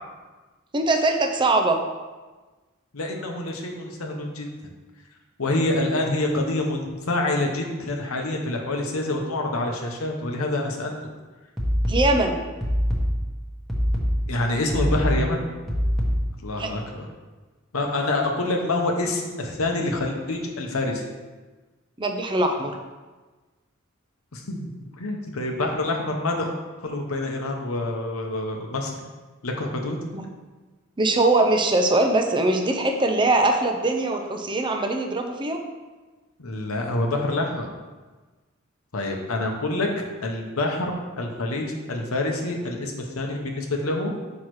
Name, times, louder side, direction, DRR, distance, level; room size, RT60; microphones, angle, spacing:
voice 1, 0.7-1.8 11.9-12.4 16.6-16.7 22.0-22.8 30.1-30.3 31.0-35.6, right 2 dB, 25° right, 4 dB, 0.5 m, -22 dB
voice 2, 2.9-4.5 5.4-11.0 14.3-15.4 16.4-17.1 17.7-21.0 24.3-24.7 25.0-26.5 26.8-29.0 29.4-30.0 36.4-37.7 38.9-44.1, left 2 dB, 85° left, 2 dB, 0.9 m, -26 dB
sound 1, 11.6-16.5, equal, ahead, 1.1 m, -25 dB
6.2 x 5.5 x 3.1 m, 1.3 s
head